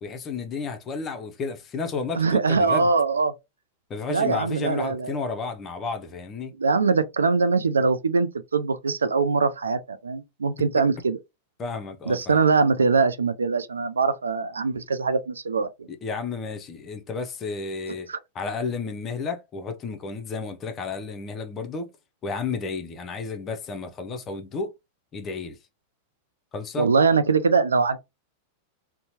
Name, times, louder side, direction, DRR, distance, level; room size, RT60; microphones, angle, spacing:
voice 1, 0.0-2.9 3.9-6.5 11.6-12.4 16.0-18.1 18.3-21.9 22.2-24.7 25.1-25.6 26.5-26.9, left 4 dB, 30° left, 0.6 m, -32 dB
voice 2, 2.1-3.3 4.1-5.2 6.6-11.2 12.1-15.7 18.1-18.2 26.8-28.0, right 4 dB, 90° right, 0.4 m, -22 dB
2.8 x 2.1 x 2.8 m
hypercardioid pair, 100°, 0 cm